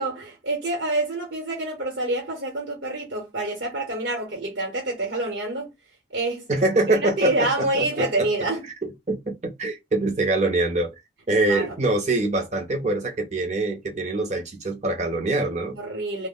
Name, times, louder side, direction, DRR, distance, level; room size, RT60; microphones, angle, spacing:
voice 1, 0.0-5.7 6.1-6.5 6.9-8.6 11.5-11.8 15.7-16.3, right 2 dB, 65° right, 0.9 m, -27 dB
voice 2, 6.5-8.3 8.8-10.9 11.3-15.8, right 2 dB, 35° right, 0.6 m, -24 dB
2.1 x 2.1 x 3.7 m
head